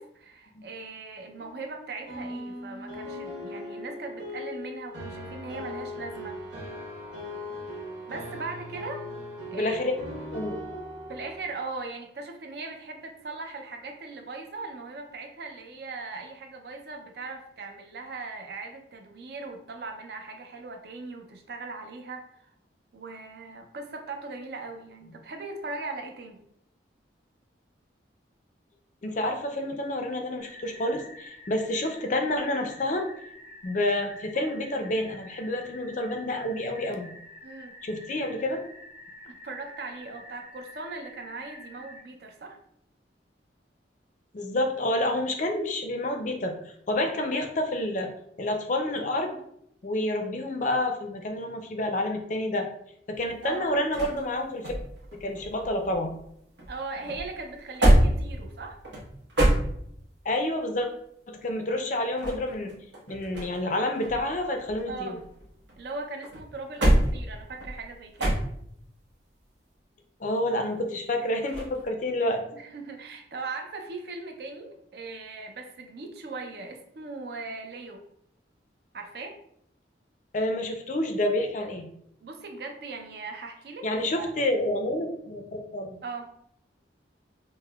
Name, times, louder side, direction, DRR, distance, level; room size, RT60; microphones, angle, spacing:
voice 1, 0.0-6.4 8.1-9.0 9.5-9.8 11.1-22.5 22.9-26.4 34.3-34.5 37.4-37.8 39.2-42.6 53.4-53.7 56.7-58.8 64.9-65.2 65.8-68.4 72.5-78.0 78.9-79.3 82.2-83.8 84.2-84.3 86.0-86.3, right 3 dB, 55° right, 4 dB, 0.4 m, -39 dB
sound 1, 1.4-11.5, left 1 dB, 90° right, 1.3 m, -39 dB
voice 2, 9.5-9.9 10.3-10.9 29.0-33.1 33.6-37.1 37.8-38.6 44.3-46.6 46.9-48.1 48.4-49.4 49.8-52.7 53.1-54.7 55.2-56.1 60.2-60.9 61.3-62.7 63.1-65.2 70.2-72.4 80.3-81.9 83.8-86.0, left 1 dB, 40° left, 4 dB, 0.4 m, -29 dB
sound 2, 30.4-42.0, left 1 dB, 35° right, 1.4 m, -48 dB
sound 3, 53.1-56.3 56.6-60.2 61.9-63.7 64.0-65.8 66.2-68.9 71.5-71.8, right 1 dB, 70° right, 1.0 m, -26 dB
5.4 x 2.0 x 2.2 m, 0.72 s
head